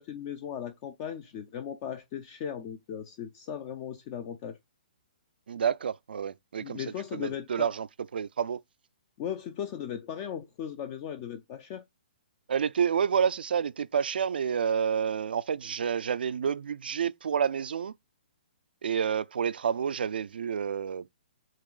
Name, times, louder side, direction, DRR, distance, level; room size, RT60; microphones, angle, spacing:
voice 1, 0.0-4.6 6.6-7.7 9.2-11.8, left 9 dB, 30° left, 0.5 m, -37 dB
voice 2, 5.5-7.9 8.1-8.6 12.5-17.9 18.8-21.1, right 7 dB, 80° right, 0.4 m, -29 dB
7.2 x 3.0 x 2.3 m
hypercardioid pair, 155°, 5 cm